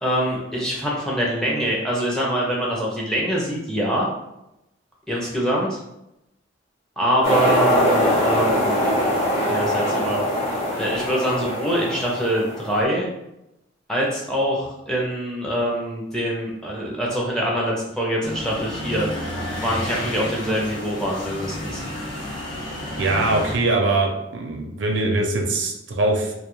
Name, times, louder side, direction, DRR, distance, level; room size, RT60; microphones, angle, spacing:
voice 1, 0.0-4.1 5.1-5.8 7.0-8.9 9.5-10.2 10.8-13.1 13.9-19.1 19.6-21.8, equal, 5° left, -4 dB, 0.5 m, -24 dB
sound 1, 7.2-12.8, equal, 30° left, 0.7 m, -22 dB
sound 2, 18.2-23.6, left 1 dB, 75° left, 0.7 m, -31 dB
voice 2, 23.0-26.3, right 2 dB, 65° right, 1 dB, 0.5 m, -22 dB
2.3 x 2.2 x 3.0 m, 0.87 s
head